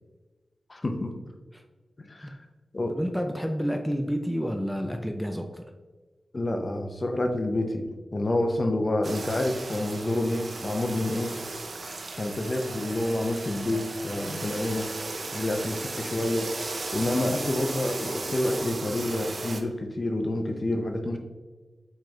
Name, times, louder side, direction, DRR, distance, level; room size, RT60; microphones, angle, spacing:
voice 1, 0.7-1.1 2.0-2.4 2.7-3.0 6.3-11.3 12.2-14.9 15.3-16.5 16.9-21.2, left 1 dB, 40° left, 4 dB, 0.6 m, -28 dB
voice 2, 2.9-5.6, equal, ahead, 4 dB, 0.4 m, -29 dB
sound 1, 9.0-19.6, right 3 dB, 60° right, 0.5 m, -36 dB
4.5 x 4.4 x 2.4 m, 1.3 s
cardioid pair, 55°, 0 cm